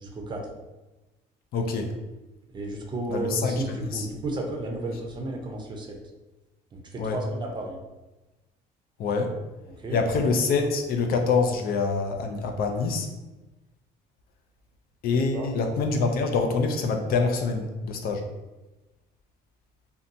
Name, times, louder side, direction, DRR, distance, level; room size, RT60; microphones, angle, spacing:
voice 1, 0.0-0.5 2.5-6.0 6.7-7.8 9.7-10.0 15.3-15.5, right 2 dB, 25° right, 1 dB, 0.5 m, -33 dB
voice 2, 1.5-1.9 3.1-4.1 7.0-7.2 9.0-9.3 9.9-13.1 15.0-18.3, left 4 dB, 65° left, 5 dB, 0.4 m, -25 dB
2.6 x 2.2 x 2.6 m, 1.1 s
cardioid pair, 110°, 17 cm